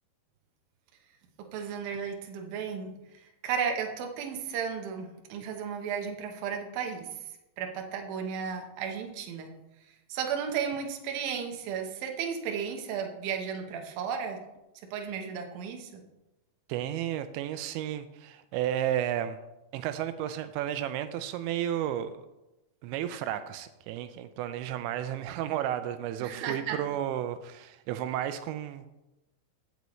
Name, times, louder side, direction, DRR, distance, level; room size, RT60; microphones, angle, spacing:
voice 1, 1.4-7.1 7.6-9.5 10.1-14.4 14.9-16.0 26.2-26.8, right 7 dB, 70° right, 3 dB, 2.5 m, -34 dB
voice 2, 16.7-19.4 19.7-22.1 22.8-28.9, right 11 dB, 85° right, 10 dB, 2.9 m, -32 dB
16.0 x 6.8 x 3.1 m, 0.96 s
omnidirectional pair, 5.2 m